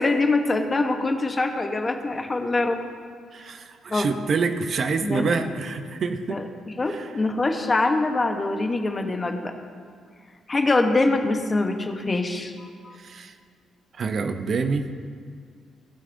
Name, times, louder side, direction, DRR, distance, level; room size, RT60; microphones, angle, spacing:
voice 1, 0.0-2.8 3.9-4.1 5.0-5.2 6.3-9.5 10.5-13.0, left 2 dB, 30° left, 5 dB, 1.0 m, -24 dB
voice 2, 3.3-6.4 6.9-7.1 12.9-13.3 13.9-14.9, right 4 dB, 50° right, 7 dB, 0.6 m, -27 dB
18.0 x 6.5 x 2.6 m, 2.1 s
cardioid pair, 90°, 0 cm